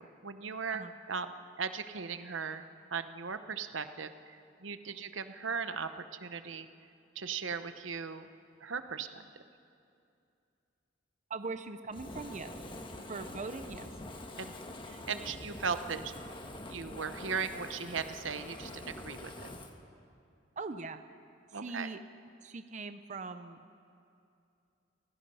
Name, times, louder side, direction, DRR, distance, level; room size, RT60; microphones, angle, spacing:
voice 1, 0.0-6.7 7.1-8.3 8.6-9.2 12.7-12.8 14.4-14.5 14.9-16.1 16.7-19.5 21.5-21.9, right 6 dB, 80° right, 10 dB, 0.9 m, -38 dB
voice 2, 11.3-12.5 13.1-13.9 20.6-21.0 21.5-22.0 22.4-23.7, right 3 dB, 40° right, 9 dB, 0.6 m, -41 dB
Fire, 11.9-19.7, left 1 dB, 25° left, 1.3 m, -45 dB
30.0 x 16.5 x 5.5 m, 2.6 s
head